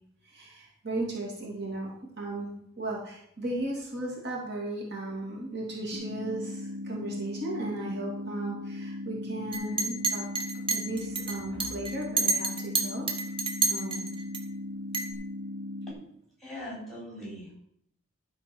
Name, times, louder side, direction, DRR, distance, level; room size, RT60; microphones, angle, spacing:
voice 1, 0.2-2.5 2.8-10.2 10.7-13.1 13.7-14.1, right 2 dB, 55° right, -3 dB, 2.6 m, -36 dB
sound 1, 5.9-15.9, left 1 dB, 70° right, 1.7 m, -38 dB
Chink clink, 9.5-14.4 14.9-15.1, right 4 dB, 25° right, 1.3 m, -29 dB
voice 2, 16.4-17.6, left 1 dB, ahead, -4 dB, 4.4 m, -41 dB
12.0 x 4.6 x 6.2 m, 0.70 s
head